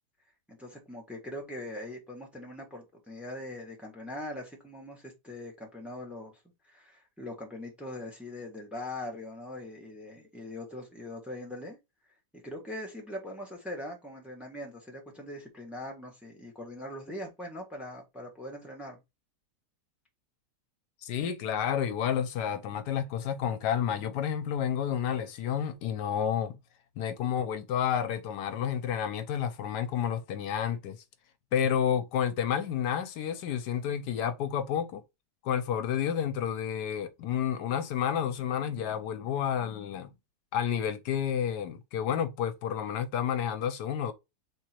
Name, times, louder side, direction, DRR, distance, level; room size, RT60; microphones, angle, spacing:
voice 1, 0.5-6.4 6.7-11.8 12.4-19.0, left 1 dB, ahead, 1.3 m, -41 dB
voice 2, 21.0-26.6 27.0-31.0 31.5-35.0 35.4-40.1 40.5-44.1, left 9 dB, 80° left, 1.2 m, -30 dB
3.7 x 3.1 x 4.4 m
omnidirectional pair, 1.8 m